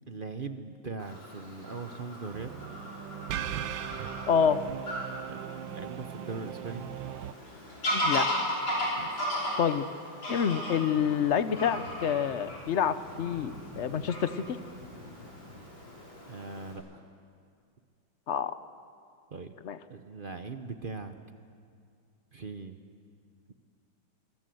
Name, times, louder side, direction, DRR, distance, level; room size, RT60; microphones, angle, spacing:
voice 1, 0.1-2.7 5.3-5.4 5.7-6.9 9.0-9.3 16.3-17.0 19.3-19.5 19.9-21.1 22.3-22.8, right 4 dB, 45° right, 8 dB, 0.7 m, -40 dB
Fowl / Bird vocalization bird call bird song, 1.0-16.7, equal, 90° left, 6.5 m, -37 dB
sound 1, 2.3-7.3, right 10 dB, 85° right, 1.5 m, -38 dB
voice 2, 4.3-4.6 7.9-8.3 9.6-9.9 10.3-14.6 18.3-18.5 19.6-19.8, left 7 dB, 55° left, 12 dB, 0.8 m, -27 dB
25.5 x 21.0 x 7.8 m, 2.3 s
omnidirectional pair, 2.0 m